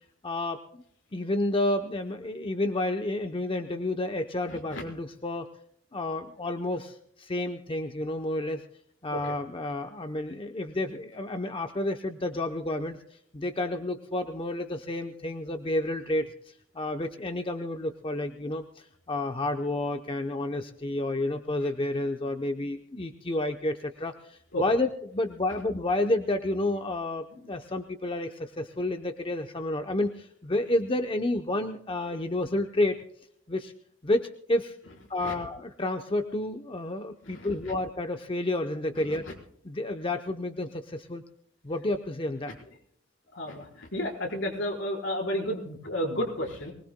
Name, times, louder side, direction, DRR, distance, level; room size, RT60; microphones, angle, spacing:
voice 1, 0.2-0.8 1.1-5.5 5.9-8.6 9.0-33.0 33.5-33.7 34.0-34.8 35.1-39.3 39.6-41.2 41.6-42.6, left 1 dB, 25° left, 6 dB, 0.7 m, -30 dB
voice 2, 4.5-4.8 9.1-9.3 24.5-24.6 35.2-35.3 37.2-37.7 39.0-39.3 43.3-46.7, equal, 70° left, 0 dB, 4.5 m, -32 dB
24.0 x 19.5 x 2.2 m, 0.69 s
head